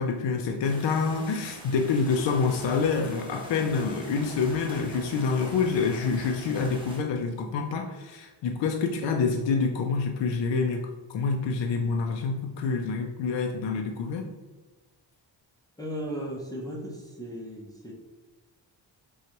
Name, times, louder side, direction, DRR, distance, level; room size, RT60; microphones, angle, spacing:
voice 1, 0.0-10.8 11.1-14.3, left 5 dB, 70° left, 3 dB, 0.5 m, -27 dB
sound 1, 0.6-7.0, right 1 dB, 10° right, 1.0 m, -44 dB
voice 2, 15.8-17.9, equal, 10° left, -3 dB, 0.6 m, -36 dB
5.9 x 2.4 x 2.9 m, 1.3 s
wide cardioid pair, 120°, 46 cm